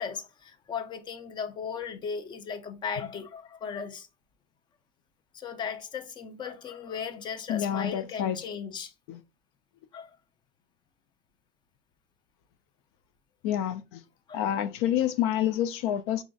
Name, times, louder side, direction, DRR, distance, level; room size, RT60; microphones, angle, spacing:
voice 1, 0.0-4.1 5.3-8.9 9.9-10.1 14.3-14.4, left 6 dB, 35° left, 0.6 m, -36 dB
voice 2, 7.5-8.4 9.1-9.2 13.4-14.0 14.3-16.2, left 10 dB, 80° left, 0.4 m, -28 dB
6.0 x 2.5 x 2.3 m
supercardioid pair, 115°, 14 cm